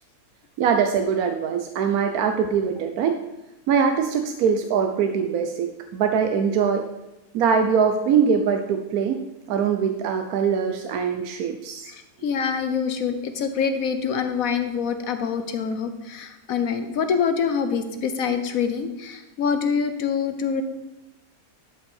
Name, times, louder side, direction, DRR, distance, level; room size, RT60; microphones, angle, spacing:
voice 1, 0.6-3.2 3.7-6.9 7.3-11.9, right 6 dB, 70° right, 7 dB, 1.1 m, -22 dB
voice 2, 11.9-20.6, left 6 dB, 60° left, 8 dB, 1.3 m, -25 dB
12.5 x 5.3 x 5.5 m, 0.97 s
omnidirectional pair, 1.7 m